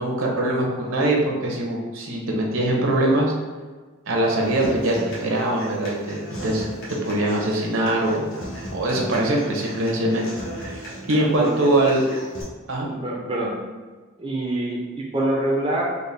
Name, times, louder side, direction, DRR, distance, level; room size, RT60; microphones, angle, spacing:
voice 1, 0.0-3.3 4.1-6.6 7.1-8.3 8.7-10.2 10.6-12.1 12.7-12.9, right 1 dB, 65° right, -1 dB, 0.7 m, -22 dB
Human voice / Acoustic guitar, 4.4-12.4, equal, 65° left, 1.0 m, -37 dB
voice 2, 11.0-11.5 12.8-13.5 14.2-15.9, right 1 dB, 25° right, -3 dB, 0.5 m, -26 dB
4.0 x 2.1 x 3.3 m, 1.4 s
head